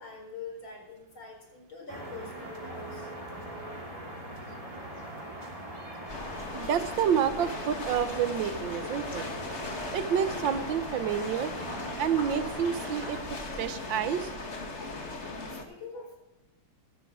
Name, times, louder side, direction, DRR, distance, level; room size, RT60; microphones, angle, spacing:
voice 1, 0.0-3.1 15.5-16.2, left 4 dB, 75° left, 1 dB, 5.2 m, -44 dB
sound 1, 1.9-13.2, right 1 dB, 15° right, 3.2 m, -41 dB
sound 2, 6.1-15.6, left 3 dB, 35° left, 1.8 m, -38 dB
voice 2, 6.5-9.3 9.9-11.5 12.0-13.2 13.6-14.3, right 8 dB, 75° right, 12 dB, 1.6 m, -29 dB
14.5 x 12.5 x 3.7 m, 0.95 s
omnidirectional pair, 2.1 m